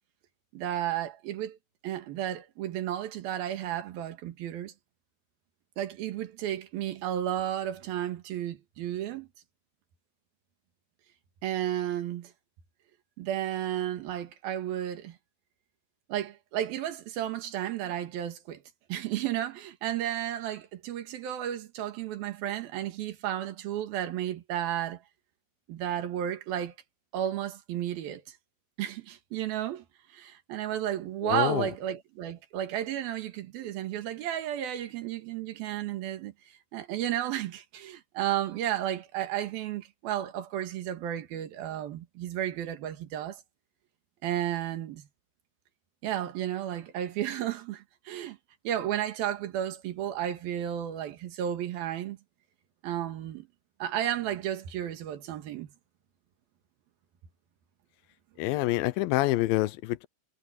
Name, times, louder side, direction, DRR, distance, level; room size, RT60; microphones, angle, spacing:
voice 1, 0.5-1.6 1.8-4.7 5.8-9.3 11.4-12.3 13.2-15.2 16.1-18.6 18.9-25.0 25.7-26.8 27.1-28.2 28.8-29.9 30.1-36.3 36.7-43.4 44.2-45.1 46.0-48.4 48.7-52.2 52.8-53.5 53.8-55.7, right 11 dB, 80° right, 3.6 m, -33 dB
voice 2, 31.2-31.6 58.4-60.1, left 18 dB, 80° left, 2.4 m, -26 dB
omnidirectional pair, 4.2 m